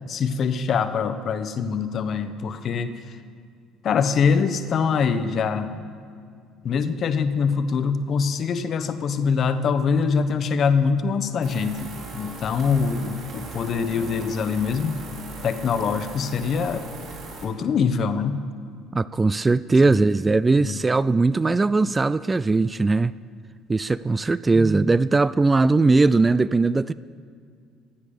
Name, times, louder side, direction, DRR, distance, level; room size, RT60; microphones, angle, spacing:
voice 1, 0.1-3.0 3.8-5.7 6.6-15.0 15.4-16.8 17.4-18.4 20.6-20.8, left 5 dB, 45° left, 1.0 m, -24 dB
sound 1, 11.4-17.5, right 2 dB, 50° right, 3.7 m, -39 dB
voice 2, 18.9-23.1 23.7-26.9, right 3 dB, 20° right, 0.3 m, -19 dB
16.0 x 9.9 x 7.0 m
figure-of-eight pair, 55°, 0 cm